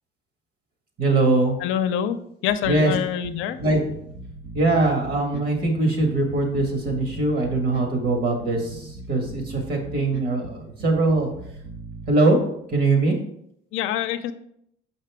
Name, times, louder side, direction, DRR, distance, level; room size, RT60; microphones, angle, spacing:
voice 1, 1.0-1.6 2.7-2.9 3.6-3.8 4.5-11.3 12.1-12.4 12.7-13.2, right 2 dB, 50° right, 2 dB, 1.8 m, -21 dB
voice 2, 1.6-3.6 13.7-14.3, left 9 dB, 80° left, 9 dB, 0.6 m, -25 dB
Bass guitar, 2.5-12.1, right 2 dB, 70° right, 1.0 m, -39 dB
6.6 x 5.3 x 3.5 m, 0.73 s
cardioid pair, 135°, 20 cm